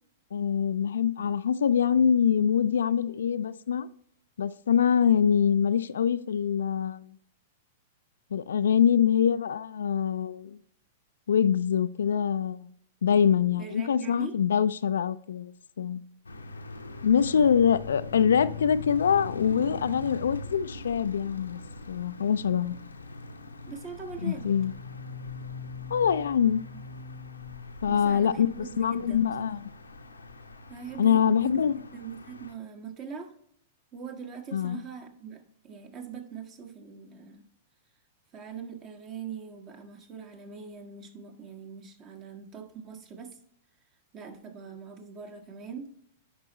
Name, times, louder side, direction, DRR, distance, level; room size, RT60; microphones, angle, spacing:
voice 1, 0.3-3.9 4.4-7.2 8.3-10.6 11.3-12.7 13.0-16.0 17.0-21.6 21.9-22.8 24.2-24.7 25.9-26.6 27.8-29.6 31.0-31.8 34.5-34.8, left 8 dB, 70° left, 0.3 m, -24 dB
voice 2, 13.6-14.3 23.7-24.5 27.9-29.4 30.7-31.6 31.9-33.3 33.9-37.5 38.3-43.4 44.1-45.9, right 6 dB, 35° right, 1.4 m, -42 dB
sound 1, 16.2-32.5, left 3 dB, 85° left, 0.8 m, -41 dB
10.0 x 5.2 x 3.0 m
figure-of-eight pair, 100°, 0 cm